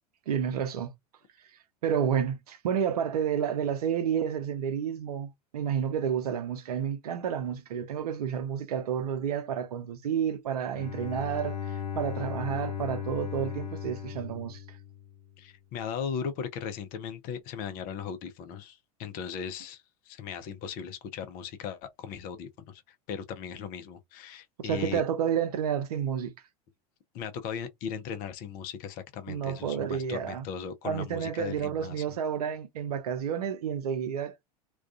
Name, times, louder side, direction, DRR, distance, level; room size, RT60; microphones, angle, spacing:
voice 1, 0.3-0.9 1.8-14.6 24.6-26.3 29.3-30.4 30.8-34.3, right 8 dB, 75° right, 0.6 m, -30 dB
Bowed string instrument, 10.7-15.4, left 8 dB, 85° left, 0.7 m, -37 dB
voice 2, 15.4-22.8 23.1-25.0 27.1-32.0, left 7 dB, 45° left, 0.6 m, -38 dB
2.3 x 2.3 x 2.4 m
hypercardioid pair, 85°, 20 cm